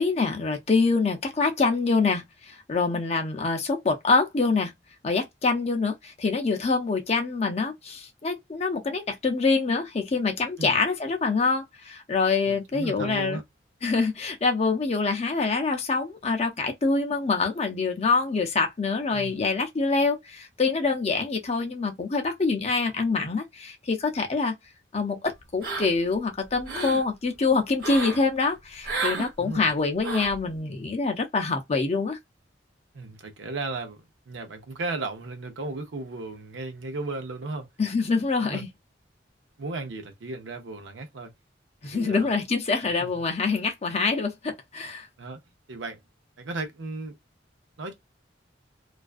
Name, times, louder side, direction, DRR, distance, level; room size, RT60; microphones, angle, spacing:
voice 1, 0.0-4.7 5.0-13.4 13.8-24.5 24.9-32.2 37.8-38.7 41.8-45.1, left 4 dB, 35° left, 0.5 m, -25 dB
voice 2, 12.4-13.4 19.1-19.4 29.4-29.7 32.9-37.7 38.4-38.6 39.6-41.3 41.8-42.3 43.0-43.1 45.2-45.4 45.7-46.0 46.4-47.2 47.8-47.9, right 3 dB, 80° right, 0.6 m, -35 dB
sound 1, 25.6-26.1 26.5-27.0 27.8-28.2 28.8-29.3 30.0-30.4, right 3 dB, 50° right, 1.1 m, -31 dB
2.4 x 2.2 x 2.3 m
head